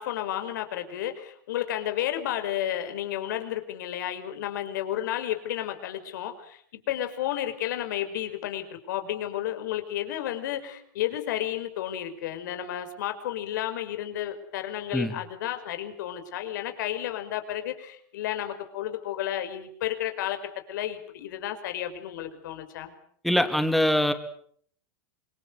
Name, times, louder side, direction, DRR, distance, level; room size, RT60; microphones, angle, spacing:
voice 1, 0.0-20.4 20.7-22.9, left 12 dB, 75° left, 8 dB, 5.3 m, -32 dB
voice 2, 23.2-24.1, equal, ahead, 7 dB, 3.3 m, -23 dB
26.5 x 22.0 x 8.2 m, 0.62 s
supercardioid pair, 120°, 10 cm